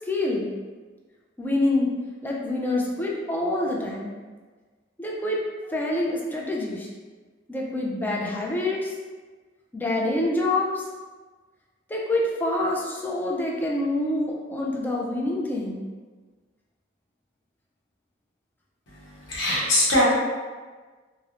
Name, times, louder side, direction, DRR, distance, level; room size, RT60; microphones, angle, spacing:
voice 1, 0.1-0.5 1.4-1.9 2.2-4.1 5.0-6.9 7.5-8.9 9.7-10.8 11.9-15.8, left 2 dB, 10° left, -3 dB, 0.3 m, -26 dB
voice 2, 18.9-20.1, left 1 dB, 80° left, -6 dB, 0.8 m, -23 dB
2.4 x 2.0 x 2.8 m, 1.4 s
head